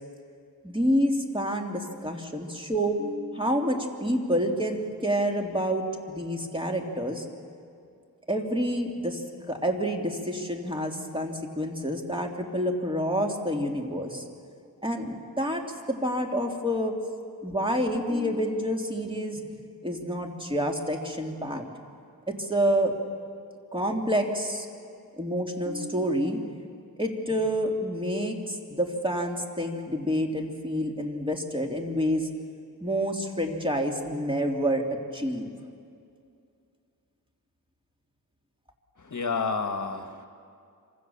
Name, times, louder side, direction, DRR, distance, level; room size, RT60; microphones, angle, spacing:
voice 1, 0.6-7.2 8.3-14.2 14.8-17.0 17.4-19.4 19.8-21.6 22.3-22.9 23.7-24.7 25.1-26.4 27.0-32.3 32.8-35.5, equal, 15° right, 2 dB, 2.8 m, -28 dB
voice 2, 39.1-40.3, left 4 dB, 55° left, 5 dB, 1.6 m, -30 dB
26.5 x 25.5 x 7.1 m, 2.4 s
wide cardioid pair, 75°, 36 cm